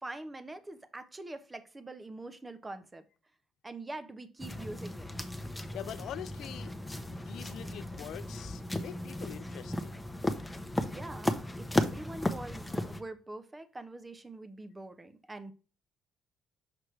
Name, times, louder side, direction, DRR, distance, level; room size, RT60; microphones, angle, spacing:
voice 1, 0.0-3.0 3.6-5.1 10.8-15.5, right 2 dB, 20° right, 1.0 m, -44 dB
sound 1, 4.4-13.0, left 1 dB, 10° left, 1.1 m, -35 dB
voice 2, 5.7-6.7 7.3-9.9, left 11 dB, 65° left, 0.5 m, -44 dB
6.1 x 6.0 x 3.3 m
hypercardioid pair, 50°, 0 cm